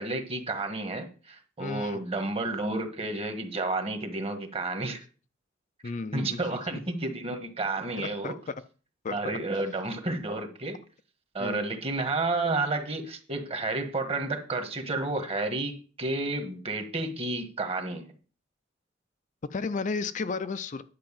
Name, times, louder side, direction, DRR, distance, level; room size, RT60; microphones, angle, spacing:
voice 1, 0.0-5.0 6.1-8.4 9.1-10.8 11.3-18.1, right 2 dB, 30° right, 1.5 m, -31 dB
voice 2, 1.6-2.1 5.8-6.4 6.7-6.8 8.0-8.6 9.0-9.2 11.4-11.8 19.5-20.8, left 4 dB, 40° left, 0.5 m, -33 dB
10.5 x 4.6 x 7.4 m
head